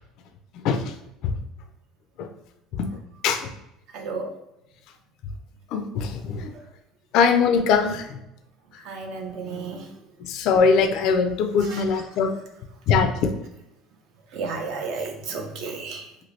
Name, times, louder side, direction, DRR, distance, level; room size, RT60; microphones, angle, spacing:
voice 1, 0.5-1.0 1.2-1.3 2.2-2.3 2.7-2.9 3.2-3.5 5.7-6.5 7.1-8.2 8.7-8.8 10.2-12.4 12.9-13.4, left 5 dB, 50° left, 6 dB, 0.3 m, -22 dB
voice 2, 3.9-4.3 6.5-6.6 8.8-9.9 11.6-11.8 14.3-16.1, right 4 dB, 50° right, 3 dB, 0.6 m, -33 dB
2.9 x 2.5 x 3.1 m, 0.88 s
cardioid pair, 170°, 0 cm